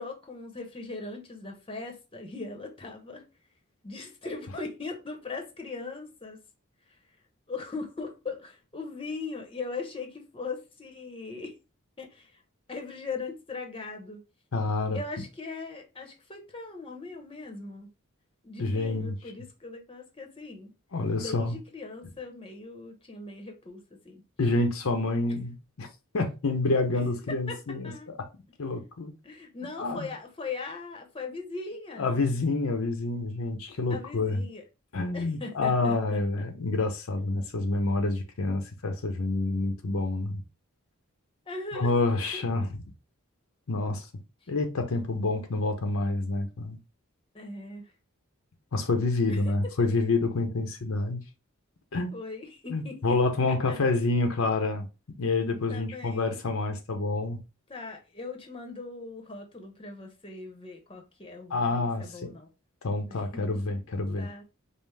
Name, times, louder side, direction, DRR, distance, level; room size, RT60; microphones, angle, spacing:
voice 1, 0.0-3.2 3.8-6.4 7.5-11.6 12.0-12.3 12.7-14.2 14.9-17.9 18.4-20.7 21.2-24.2 27.5-27.6 27.8-28.1 29.2-32.2 33.9-34.6 35.1-36.5 41.5-42.4 47.3-47.9 49.3-49.4 52.1-53.2 53.5-53.8 55.7-56.4 57.7-62.5 63.1-63.4 63.7-63.8 64.2-64.4, left 3 dB, 25° left, 0.8 m, -39 dB
voice 2, 14.5-15.0 18.6-19.2 20.9-21.6 24.4-25.9 26.1-28.2 28.6-29.1 29.8-30.1 32.0-34.4 34.9-40.4 41.7-42.7 43.7-44.1 44.5-46.8 48.7-51.2 51.9-52.1 52.7-54.9 55.2-57.4 61.5-62.3 62.8-64.3, left 3 dB, 70° left, 0.7 m, -28 dB
5.3 x 2.0 x 3.3 m
head